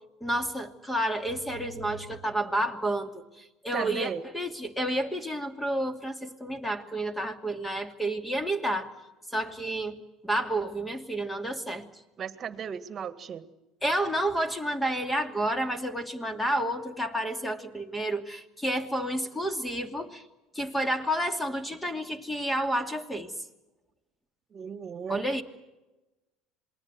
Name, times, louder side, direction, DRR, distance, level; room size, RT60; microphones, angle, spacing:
voice 1, 0.2-8.9 9.3-10.0 10.2-11.8 13.8-20.2 20.5-23.3 25.1-25.4, right 1 dB, 10° left, 7 dB, 2.7 m, -30 dB
voice 2, 3.7-4.2 12.2-13.5 24.5-25.3, right 7 dB, 35° right, 12 dB, 1.9 m, -35 dB
27.5 x 20.5 x 8.1 m, 1.0 s
supercardioid pair, 100°, 0 cm